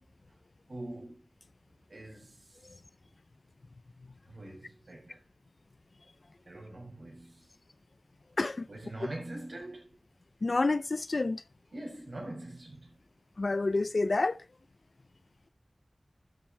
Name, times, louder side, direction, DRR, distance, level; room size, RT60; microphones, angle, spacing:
voice 1, 0.7-1.2 1.9-2.4 4.3-5.2 6.5-7.4 8.7-9.9 11.7-12.9, right 1 dB, 75° right, 6.4 m, -43 dB
voice 2, 10.4-11.4 13.4-14.4, left 3 dB, 75° left, 0.5 m, -28 dB
13.0 x 7.5 x 3.3 m
wide cardioid pair, 65°, 0 cm